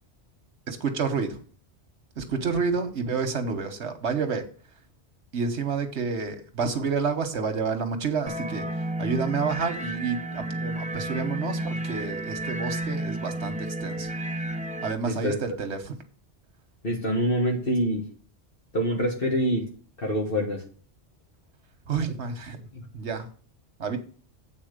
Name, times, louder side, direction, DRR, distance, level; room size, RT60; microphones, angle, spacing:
voice 1, 0.7-1.4 2.2-4.4 5.3-14.1 14.8-15.9 21.9-22.7 22.9-23.3 23.8-24.0, right 5 dB, 80° right, 7 dB, 1.5 m, -29 dB
sound 1, 8.3-14.9, right 1 dB, 10° right, 0.5 m, -31 dB
voice 2, 15.1-15.4 16.8-18.1 18.7-19.7 20.0-20.6 22.7-22.8, equal, 55° left, 0 dB, 1.8 m, -25 dB
8.3 x 4.3 x 6.6 m, 0.42 s
omnidirectional pair, 1.1 m